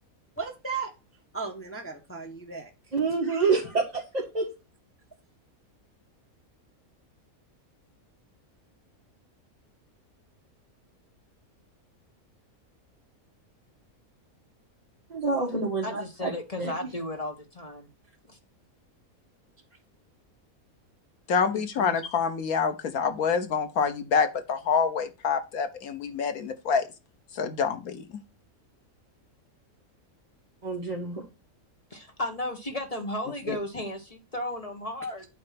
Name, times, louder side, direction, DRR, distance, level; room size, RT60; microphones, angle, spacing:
voice 1, 0.4-0.9 1.3-2.7 3.3-3.4 21.5-22.0, right 5 dB, 10° left, 1 dB, 1.2 m, -36 dB
voice 2, 2.9-4.4 15.1-16.3 16.6-16.9 30.6-31.2, right 4 dB, 30° right, -3 dB, 1.6 m, -27 dB
voice 3, 15.8-17.9 18.3-18.4 31.9-35.3, left 1 dB, 25° left, 3 dB, 1.4 m, -34 dB
voice 4, 21.3-26.8 27.4-28.0, left 6 dB, 85° left, 9 dB, 1.5 m, -26 dB
8.8 x 3.3 x 5.8 m, 0.28 s
omnidirectional pair, 1.5 m